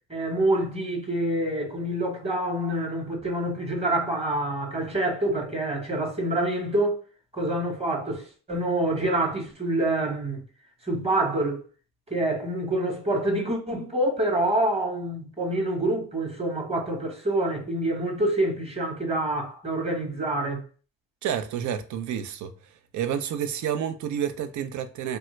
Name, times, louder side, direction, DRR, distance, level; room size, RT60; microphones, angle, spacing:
voice 1, 0.1-7.0 7.3-10.4 10.8-11.6 12.1-20.6, right 1 dB, 20° right, 1.1 m, -26 dB
voice 2, 21.2-22.5 22.9-25.2, right 9 dB, 70° right, 0.5 m, -29 dB
3.0 x 2.2 x 3.1 m
cardioid pair, 90°, 30 cm